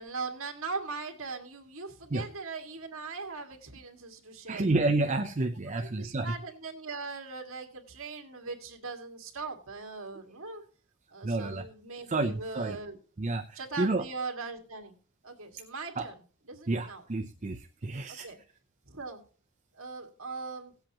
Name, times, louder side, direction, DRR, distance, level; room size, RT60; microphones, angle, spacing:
voice 1, 0.0-4.9 5.7-10.6 11.1-13.0 13.6-14.9 15.2-16.1 16.5-17.0 18.2-18.4 18.9-19.2 19.7-20.7, right 4 dB, 65° right, 2 dB, 2.0 m, -40 dB
voice 2, 4.5-6.3 11.2-11.7 12.1-12.8 13.2-14.1 16.0-16.1 16.7-18.3, right 2 dB, 35° right, 6 dB, 0.6 m, -30 dB
17.5 x 8.0 x 2.9 m, 0.40 s
head